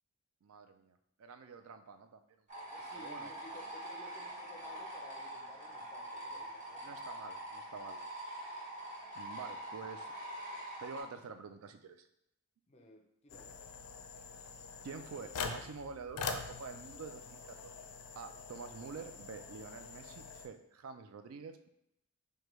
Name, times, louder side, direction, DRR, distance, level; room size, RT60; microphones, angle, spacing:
voice 1, 0.4-2.2 2.6-3.3 6.8-8.0 9.1-10.1 10.8-12.1 14.8-17.7 18.2-21.7, right 5 dB, 65° right, 8 dB, 0.3 m, -48 dB
sound 1, 2.5-11.0, right 1 dB, 35° right, 1.1 m, -44 dB
voice 2, 2.8-7.0 12.7-13.6, left 2 dB, 30° left, 3 dB, 0.4 m, -56 dB
sound 2, 13.3-20.5, left 5 dB, 85° left, 0.4 m, -44 dB
4.9 x 2.2 x 3.0 m, 0.78 s
head